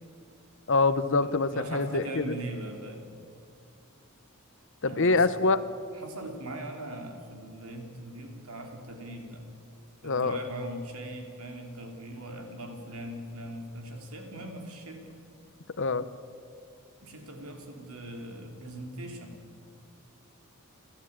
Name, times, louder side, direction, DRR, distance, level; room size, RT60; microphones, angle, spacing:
voice 1, 0.7-2.4 4.8-5.6 10.0-10.4 15.8-16.1, left 3 dB, 60° left, 14 dB, 0.9 m, -25 dB
voice 2, 1.2-3.1 4.8-5.6 5.9-9.4 10.0-15.0 17.0-19.4, right 1 dB, 85° right, 3 dB, 3.4 m, -40 dB
29.5 x 13.0 x 8.9 m, 2.3 s
head